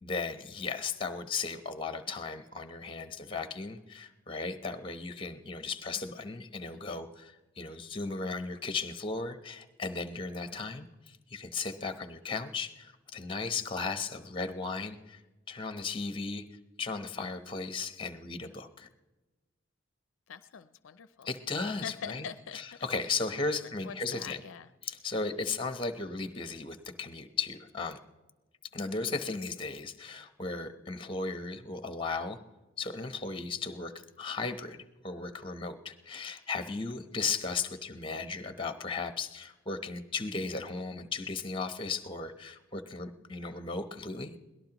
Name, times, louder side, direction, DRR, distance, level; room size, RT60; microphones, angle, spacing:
voice 1, 0.0-15.2 15.5-16.4 16.8-18.9 21.2-22.2 22.8-24.4 24.9-28.0 28.7-32.4 32.8-33.9 34.2-44.3, left 4 dB, 25° left, 9 dB, 0.8 m, -36 dB
voice 2, 6.7-7.0 20.3-21.3 21.7-23.3 23.6-24.7 25.5-25.6 38.1-38.3, left 7 dB, 65° left, 13 dB, 0.4 m, -45 dB
23.0 x 18.0 x 3.0 m, 1.1 s
head